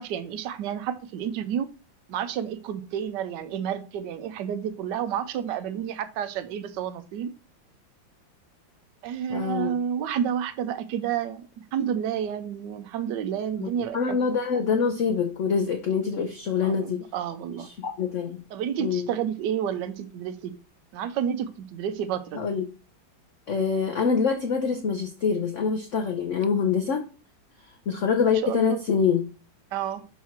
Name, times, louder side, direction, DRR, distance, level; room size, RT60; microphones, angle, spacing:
voice 1, 0.0-1.7 2.1-7.3 9.0-14.2 16.6-17.7 18.5-20.5 20.9-22.4 28.2-28.8 29.7-30.0, right 9 dB, 70° right, 11 dB, 1.2 m, -30 dB
voice 2, 9.3-9.7 13.6-17.0 17.7-18.4 18.8-19.1 22.3-22.7 23.5-27.1 27.9-29.2, left 6 dB, 65° left, 4 dB, 0.7 m, -25 dB
4.7 x 4.4 x 5.8 m, 0.35 s
omnidirectional pair, 2.1 m